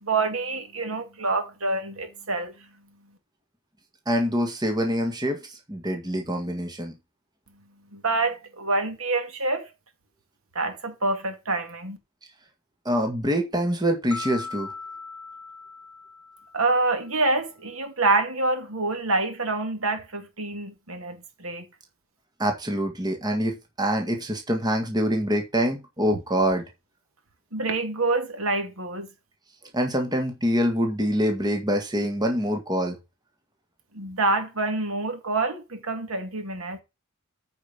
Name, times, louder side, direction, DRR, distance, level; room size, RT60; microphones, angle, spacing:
voice 1, 0.0-2.5 7.9-9.7 10.5-12.0 16.5-21.6 27.5-29.1 33.9-36.8, right 3 dB, 70° right, 2.4 m, -26 dB
voice 2, 4.1-6.9 12.9-14.7 22.4-26.6 29.7-33.0, equal, 20° right, 1.8 m, -25 dB
sound 1, 14.1-17.2, left 4 dB, 5° left, 1.9 m, -39 dB
9.1 x 5.2 x 5.4 m
head